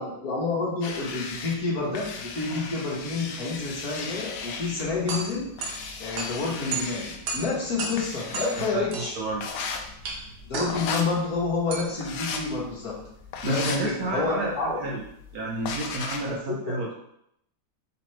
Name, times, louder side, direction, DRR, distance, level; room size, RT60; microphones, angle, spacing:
voice 1, 0.0-5.5 6.0-9.2 10.4-13.0 13.4-14.9 16.3-16.9, left 3 dB, 55° left, -4 dB, 1.6 m, -29 dB
sound 1, 0.8-16.4, left 5 dB, 75° left, 0.8 m, -37 dB
sound 2, 4.6-13.7, right 3 dB, 90° right, 1.6 m, -36 dB
voice 2, 8.5-9.5 13.4-15.0 15.3-16.9, right 2 dB, 65° right, -1 dB, 0.9 m, -30 dB
4.0 x 3.0 x 4.3 m, 0.74 s
omnidirectional pair, 2.0 m